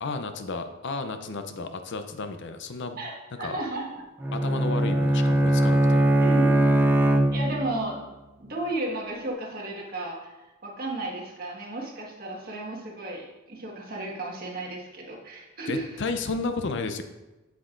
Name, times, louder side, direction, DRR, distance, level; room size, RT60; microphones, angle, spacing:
voice 1, 0.0-3.0 3.4-3.6 4.3-6.1 15.7-17.0, left 3 dB, 55° left, 8 dB, 0.6 m, -32 dB
voice 2, 3.4-4.0 6.2-6.6 7.3-8.1 8.4-15.9, right 2 dB, 45° right, -1 dB, 1.6 m, -33 dB
Bowed string instrument, 4.2-7.9, right 1 dB, 10° right, 0.5 m, -21 dB
8.2 x 8.1 x 2.6 m, 1.1 s
head